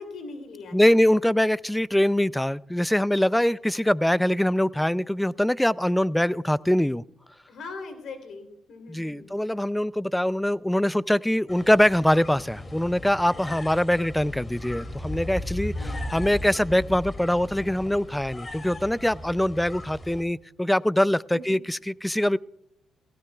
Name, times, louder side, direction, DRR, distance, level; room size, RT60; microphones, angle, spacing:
voice 1, 0.0-0.9 7.5-9.4 15.7-16.3 21.3-21.6, left 3 dB, 70° left, 6 dB, 3.3 m, -41 dB
voice 2, 0.7-7.0 8.9-22.4, left 1 dB, 5° left, 20 dB, 0.4 m, -23 dB
sound 1, 11.5-20.2, left 1 dB, 30° left, 2.6 m, -37 dB
18.0 x 16.5 x 2.3 m, 0.77 s
supercardioid pair, 70°, 0 cm